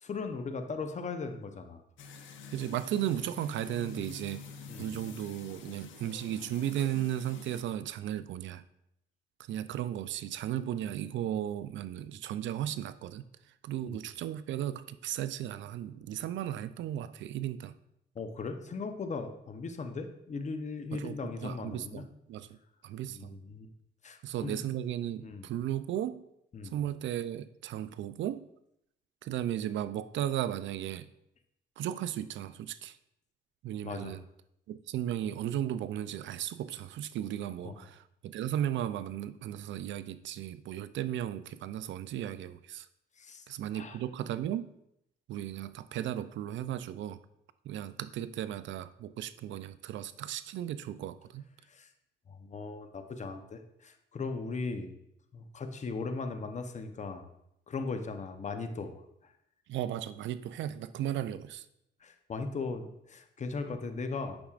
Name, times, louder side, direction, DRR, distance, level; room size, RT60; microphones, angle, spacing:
voice 1, 0.0-1.8 4.7-4.9 13.8-14.0 18.1-22.0 23.1-23.7 24.0-24.6 25.2-25.5 26.5-26.8 33.8-34.2 37.6-37.8 43.2-43.5 43.7-44.0 51.7-51.9 52.3-54.9 55.3-57.3 57.7-59.3 62.0-64.4, left 4 dB, 35° left, 7 dB, 0.8 m, -38 dB
sound 1, 2.0-7.6, left 4 dB, 70° left, 0.8 m, -47 dB
voice 2, 2.5-4.5 4.8-8.6 9.5-13.3 13.6-17.7 20.9-22.6 22.8-23.4 24.2-26.2 26.7-28.4 29.2-31.1 31.8-33.0 33.6-34.2 34.7-42.9 43.5-44.7 45.3-47.2 47.6-51.5 59.7-61.7, right 11 dB, 70° right, 14 dB, 0.4 m, -35 dB
8.6 x 6.1 x 2.4 m, 0.79 s
cardioid pair, 90°, 20 cm